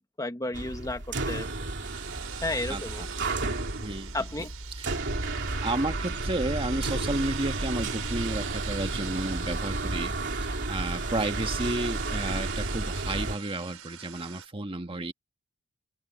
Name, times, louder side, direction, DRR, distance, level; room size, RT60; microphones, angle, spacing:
voice 1, 0.0-1.5 2.4-3.0 4.1-4.5, left 2 dB, 15° left, 1.5 m, -33 dB
sound 1, 0.5-13.4, right 2 dB, 60° right, 2.9 m, -32 dB
sound 2, 1.8-14.5, right 11 dB, 85° right, 5.9 m, -44 dB
voice 2, 2.7-3.1 3.8-5.0 5.6-15.1, right 2 dB, 25° right, 1.5 m, -32 dB
open air
head